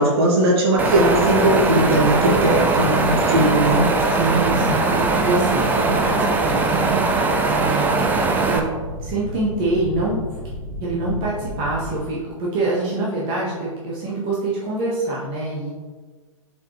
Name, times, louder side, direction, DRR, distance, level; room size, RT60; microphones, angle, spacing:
voice 1, 0.0-3.9, right 1 dB, 45° right, -3 dB, 1.9 m, -18 dB
Wind, 0.8-8.6, right 3 dB, 10° right, 0.4 m, -20 dB
sound 1, 0.8-12.0, equal, 75° right, 1.2 m, -33 dB
voice 2, 4.1-8.1 8.4-8.7 9.0-10.3 10.8-15.7, right 2 dB, 30° right, -6 dB, 1.4 m, -25 dB
6.8 x 4.6 x 3.1 m, 1.4 s
figure-of-eight pair, 115°, 18 cm